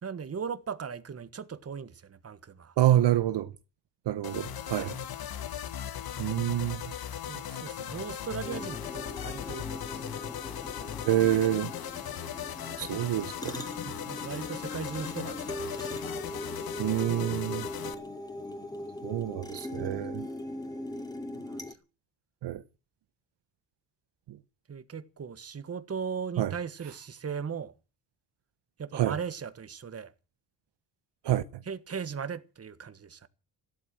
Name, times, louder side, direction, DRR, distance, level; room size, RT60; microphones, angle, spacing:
voice 1, 0.0-2.8 7.3-10.3 13.8-15.9 21.3-21.7 24.7-27.7 28.8-30.1 31.6-33.3, right 6 dB, 35° right, 1.4 m, -38 dB
voice 2, 2.8-3.5 4.1-5.0 6.2-6.8 11.0-11.7 12.8-13.6 16.8-17.7 19.0-20.3 22.4-22.6 24.3-24.4 26.4-26.5 28.9-29.1 31.2-31.4, right 12 dB, 70° right, 1.0 m, -27 dB
sound 1, 4.2-17.9, left 10 dB, 55° left, 1.3 m, -38 dB
sound 2, 8.4-21.7, left 1 dB, 10° left, 2.5 m, -40 dB
14.5 x 13.0 x 7.6 m
cardioid pair, 115°, 44 cm